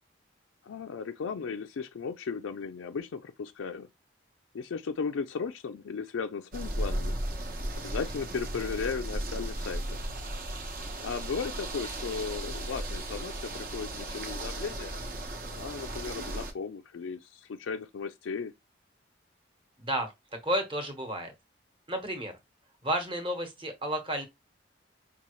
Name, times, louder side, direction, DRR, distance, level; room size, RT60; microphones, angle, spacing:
voice 1, 0.6-3.9 4.5-7.2 7.7-10.0 11.0-15.0 15.6-18.5, left 5 dB, 85° left, 0.4 m, -36 dB
sound 1, 6.5-16.5, right 1 dB, 45° right, 0.8 m, -36 dB
voice 2, 19.8-20.1 20.4-21.3 21.9-22.3 22.8-24.2, right 1 dB, 25° right, 1.0 m, -31 dB
5.3 x 2.3 x 3.1 m
head